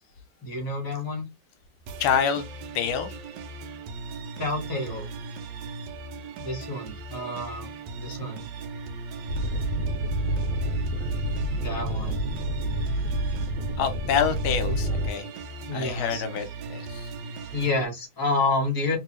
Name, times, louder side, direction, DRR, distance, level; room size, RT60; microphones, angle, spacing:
voice 1, 0.4-1.3 4.4-5.1 6.4-8.5 11.6-12.2 15.7-16.2 17.5-19.0, left 2 dB, 15° left, 0.9 m, -29 dB
sound 1, 1.9-17.9, right 3 dB, 70° right, 1.1 m, -38 dB
voice 2, 2.0-2.5 2.7-3.1 13.8-15.3 15.7-17.1, left 7 dB, 80° left, 1.5 m, -27 dB
sound 2, 9.3-15.1, right 1 dB, 90° right, 1.5 m, -28 dB
3.2 x 2.6 x 3.1 m
omnidirectional pair, 2.2 m